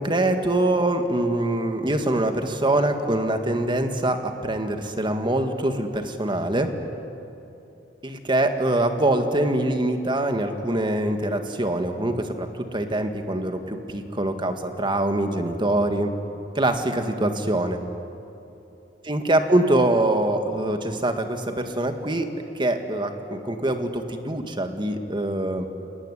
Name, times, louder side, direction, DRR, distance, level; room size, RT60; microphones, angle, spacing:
voice 1, 0.0-6.7 8.0-16.1 16.6-17.8 19.1-22.3 22.6-25.7, right 1 dB, 25° right, 6 dB, 1.9 m, -24 dB
28.5 x 19.5 x 10.0 m, 2.8 s
head